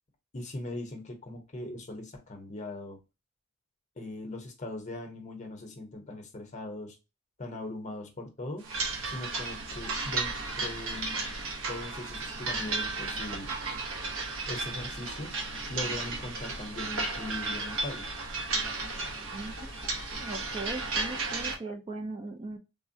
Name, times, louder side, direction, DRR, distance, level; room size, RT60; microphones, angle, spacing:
voice 1, 0.3-3.0 4.0-7.0 7.4-8.7 9.1-11.2 11.7-13.5 14.5-15.3 15.7-18.1, left 1 dB, 35° left, 0.7 m, -40 dB
sound 1, 8.6-21.6, right 3 dB, 75° right, 0.8 m, -34 dB
voice 2, 19.3-19.7 20.1-22.6, right 2 dB, 25° right, 0.3 m, -39 dB
3.6 x 2.0 x 2.6 m
head